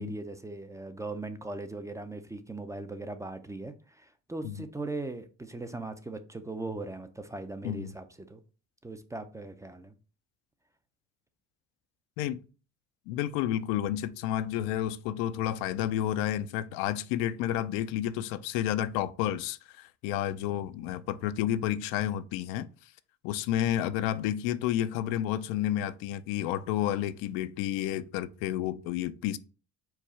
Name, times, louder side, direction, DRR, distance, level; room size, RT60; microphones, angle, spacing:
voice 1, 0.0-8.4 8.8-9.9, right 2 dB, 10° right, 0.4 m, -39 dB
voice 2, 13.1-22.7 23.2-29.4, left 12 dB, 80° left, 0.5 m, -30 dB
4.7 x 2.3 x 4.1 m
supercardioid pair, 85°, 34 cm